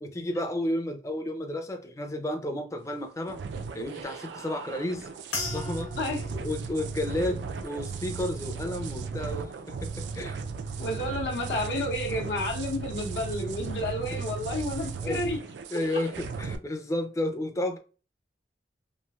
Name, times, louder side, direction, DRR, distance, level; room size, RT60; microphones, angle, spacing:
voice 1, 0.0-3.4 3.7-5.1 5.5-5.9 6.4-10.4 14.1-14.2 15.0-15.2 15.7-17.8, left 1 dB, 15° left, 0.4 m, -32 dB
sound 1, 3.3-16.6, right 5 dB, 80° right, 0.3 m, -36 dB
sound 2, 5.3-9.9 10.2-10.8 11.4-11.7, left 3 dB, 90° left, 1.0 m, -42 dB
voice 2, 5.9-6.3 10.8-15.4, left 1 dB, 70° left, 0.7 m, -31 dB
3.1 x 2.4 x 2.3 m
head